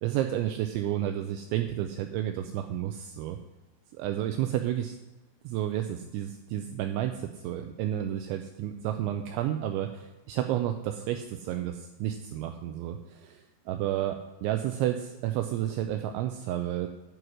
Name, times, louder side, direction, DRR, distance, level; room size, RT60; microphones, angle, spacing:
voice 1, 0.0-3.4 3.9-5.0 5.4-16.9, right 12 dB, 85° right, 6 dB, 2.7 m, -31 dB
9.7 x 7.8 x 6.2 m, 1.1 s
omnidirectional pair, 5.8 m